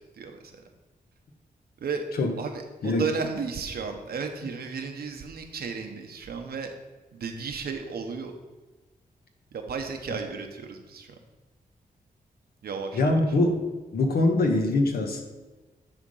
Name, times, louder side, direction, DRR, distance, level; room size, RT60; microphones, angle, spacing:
voice 1, 0.1-0.6 1.8-2.0 2.4-6.7 7.1-8.3 9.5-11.2 12.6-13.2, right 5 dB, 85° right, 4 dB, 1.0 m, -34 dB
voice 2, 12.9-13.6 13.9-15.2, left 2 dB, 75° left, 3 dB, 1.3 m, -23 dB
10.0 x 3.7 x 5.5 m, 1.2 s
wide cardioid pair, 95°, 16 cm